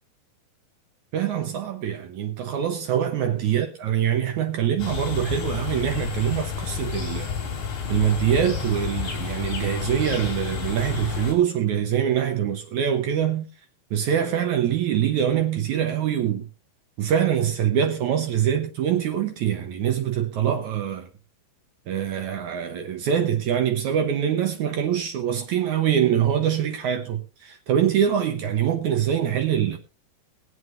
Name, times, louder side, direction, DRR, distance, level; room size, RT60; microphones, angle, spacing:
voice 1, 1.1-7.3 7.9-13.5 13.9-16.5 17.0-21.1 21.9-29.8, right 9 dB, 70° right, 1.8 m, -24 dB
sound 1, 4.8-11.3, left 6 dB, 55° left, 4.3 m, -30 dB
22.5 x 8.0 x 2.5 m
omnidirectional pair, 4.5 m